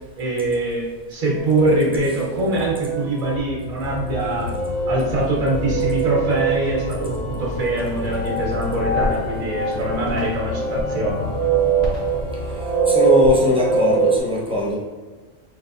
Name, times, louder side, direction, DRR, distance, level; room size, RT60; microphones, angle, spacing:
voice 1, 0.2-0.8 1.1-4.5 4.9-11.3, right 1 dB, 85° right, -4 dB, 1.6 m, -23 dB
sound 1, 1.2-14.2, right 4 dB, 55° right, 1.2 m, -24 dB
Organ, 3.8-13.0, left 4 dB, 65° left, 0.5 m, -32 dB
voice 2, 12.9-14.8, left 1 dB, 5° right, -5 dB, 0.5 m, -20 dB
4.5 x 3.3 x 2.5 m, 1.3 s
omnidirectional pair, 1.4 m